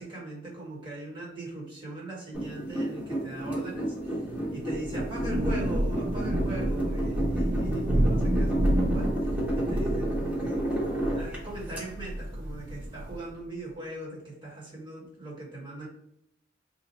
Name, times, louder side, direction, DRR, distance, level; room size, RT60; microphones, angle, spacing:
voice 1, 0.0-4.2 4.5-9.3 9.5-15.9, right 1 dB, 25° right, -5 dB, 1.2 m, -40 dB
sound 1, 2.3-11.8, right 1 dB, 10° right, 1.0 m, -31 dB
Thunder / Rain, 4.7-13.3, right 1 dB, 70° right, 0.6 m, -29 dB
2.7 x 2.1 x 4.0 m, 0.77 s
head